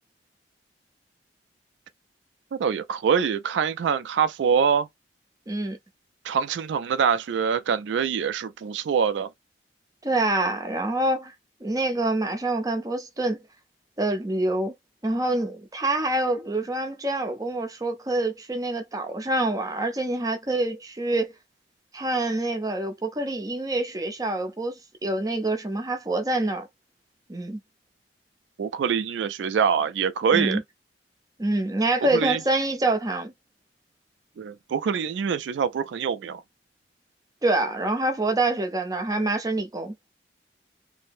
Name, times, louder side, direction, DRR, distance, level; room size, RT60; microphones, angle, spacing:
voice 1, 2.5-4.9 6.2-9.3 28.6-30.6 32.0-32.4 34.4-36.4, right 7 dB, 80° right, 0.3 m, -24 dB
voice 2, 5.5-5.8 10.0-11.3 11.6-13.4 14.0-14.7 15.0-21.3 21.9-26.7 27.3-27.6 30.3-30.6 31.4-33.3 37.4-39.9, right 2 dB, 20° right, 0.6 m, -26 dB
2.6 x 2.0 x 3.4 m
head